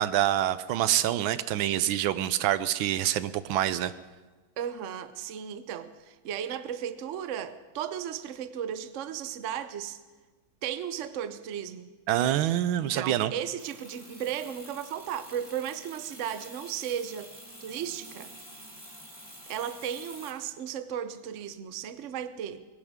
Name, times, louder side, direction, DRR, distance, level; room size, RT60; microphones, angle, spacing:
voice 1, 0.0-3.9 12.1-13.3, right 12 dB, 80° right, 1.4 m, -26 dB
voice 2, 4.6-10.0 10.6-11.9 12.8-17.3 17.6-18.3 19.5-22.6, right 9 dB, 60° right, 0.8 m, -35 dB
sound 1, 13.6-20.3, equal, 5° right, 7.1 m, -48 dB
22.0 x 18.5 x 3.6 m
omnidirectional pair, 2.2 m